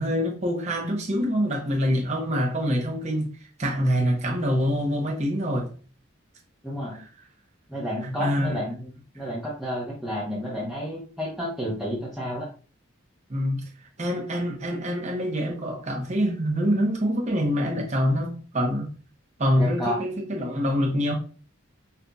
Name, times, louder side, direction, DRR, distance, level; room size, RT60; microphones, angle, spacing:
voice 1, 0.0-3.3 3.6-5.7 8.0-8.6 13.3-13.6 14.0-18.9 19.4-21.2, equal, 35° right, 0.9 m, -25 dB
voice 2, 6.6-7.0 7.7-8.9 9.1-12.5 19.6-20.0, equal, ahead, 0.7 m, -31 dB
5.6 x 2.6 x 2.3 m
head